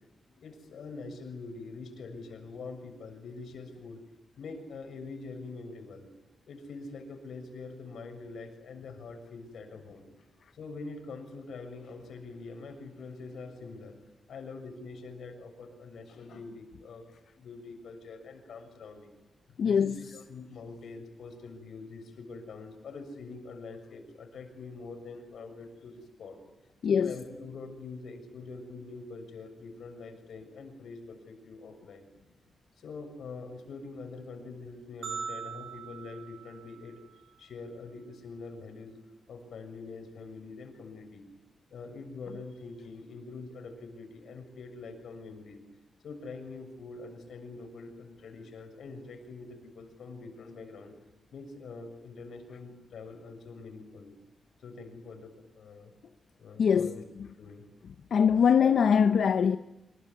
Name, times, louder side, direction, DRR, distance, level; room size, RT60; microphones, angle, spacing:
voice 1, 0.4-4.0 4.4-6.1 6.5-10.1 10.5-14.0 14.3-17.1 17.4-19.2 19.6-26.4 26.9-32.1 32.8-37.0 37.4-39.0 39.3-41.2 41.7-45.6 46.0-51.0 51.3-54.1 54.6-55.9 56.4-57.0 57.4-57.6, left 3 dB, 80° left, 6.9 m, -44 dB
voice 2, 19.6-20.0 26.8-27.1 56.6-56.9 58.1-59.6, left 7 dB, 65° left, 0.9 m, -22 dB
sound 1, 35.0-37.4, right 6 dB, 65° right, 4.1 m, -41 dB
27.0 x 22.5 x 9.8 m
wide cardioid pair, 175°, 0 cm